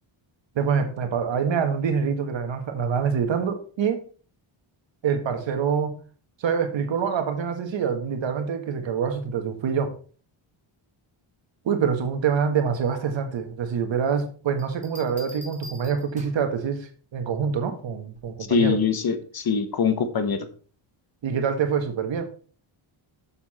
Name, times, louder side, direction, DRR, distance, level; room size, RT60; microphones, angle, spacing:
voice 1, 0.5-4.0 5.0-6.0 6.4-9.9 11.6-18.8 21.2-22.2, right 6 dB, 65° right, 6 dB, 1.7 m, -25 dB
sound 1, 14.6-16.5 18.2-18.5, left 1 dB, 15° right, 2.6 m, -45 dB
voice 2, 18.5-20.4, left 6 dB, 45° left, 9 dB, 1.3 m, -23 dB
7.2 x 7.0 x 4.2 m, 0.41 s
cardioid pair, 110°, 49 cm